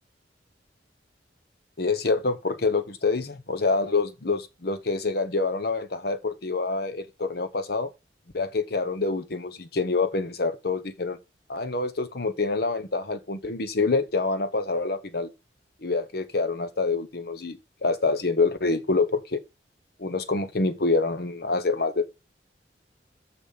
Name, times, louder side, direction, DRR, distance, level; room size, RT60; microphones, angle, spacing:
voice 1, 1.8-7.9 8.3-11.2 11.5-15.3 15.8-19.4 20.0-22.1, left 3 dB, 60° left, 0.9 m, -26 dB
7.1 x 6.2 x 5.6 m
head